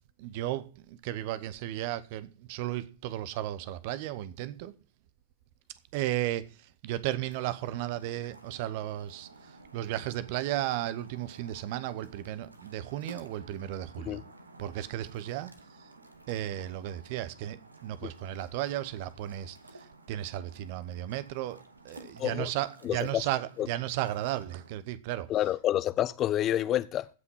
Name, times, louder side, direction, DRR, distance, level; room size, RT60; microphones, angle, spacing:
voice 1, 0.2-4.7 5.9-6.5 6.8-9.3 9.7-14.2 14.6-15.5 16.3-19.6 20.1-21.6 21.8-25.3, right 13 dB, 50° right, 0.9 m, -34 dB
sound 1, 7.3-24.7, right 2 dB, 80° right, 1.3 m, -53 dB
voice 2, 22.2-22.5 22.8-23.2 23.6-23.7 25.3-27.1, left 12 dB, 30° left, 0.7 m, -28 dB
15.5 x 6.0 x 5.4 m
figure-of-eight pair, 90°, 0 cm